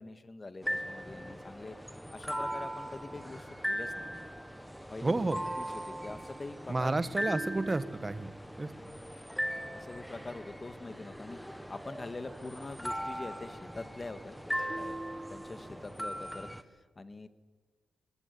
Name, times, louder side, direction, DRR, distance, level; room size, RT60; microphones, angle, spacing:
voice 1, 0.0-4.1 4.9-5.2 5.6-7.3 9.7-11.4 11.7-14.4 14.7-17.3, left 3 dB, 30° left, 10 dB, 1.9 m, -44 dB
sound 1, 0.6-16.6, equal, ahead, 1.5 m, -39 dB
voice 2, 5.0-5.4 6.7-8.3 8.6-8.7, right 2 dB, 25° right, 13 dB, 1.5 m, -30 dB
22.0 x 19.5 x 9.7 m, 1.3 s
cardioid pair, 80°, 0 cm